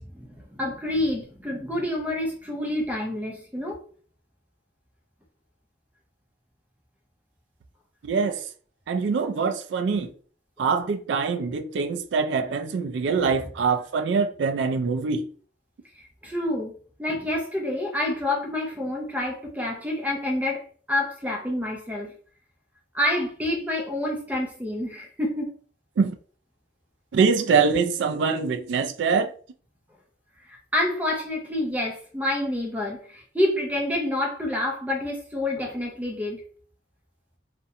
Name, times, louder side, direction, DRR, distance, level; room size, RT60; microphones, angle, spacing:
voice 1, 0.2-3.8 16.0-22.1 22.9-25.5 30.5-36.4, left 1 dB, 10° right, 0.5 m, -28 dB
voice 2, 8.0-8.4 8.9-10.1 10.6-15.3 26.0-26.2 27.1-29.3, right 5 dB, 80° right, 0.3 m, -24 dB
2.4 x 2.1 x 2.7 m
head